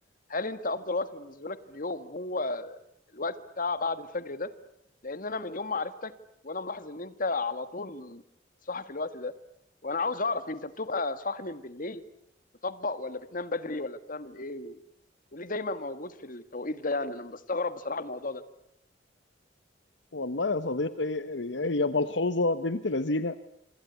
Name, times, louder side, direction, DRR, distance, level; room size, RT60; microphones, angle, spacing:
voice 1, 0.3-2.8 3.1-4.5 5.0-6.1 6.4-8.2 8.7-9.3 9.8-12.0 12.6-14.8 15.3-18.4, left 3 dB, 45° left, 13 dB, 1.6 m, -33 dB
voice 2, 20.1-23.4, left 2 dB, 70° left, 13 dB, 1.0 m, -28 dB
27.0 x 25.5 x 8.2 m, 0.76 s
head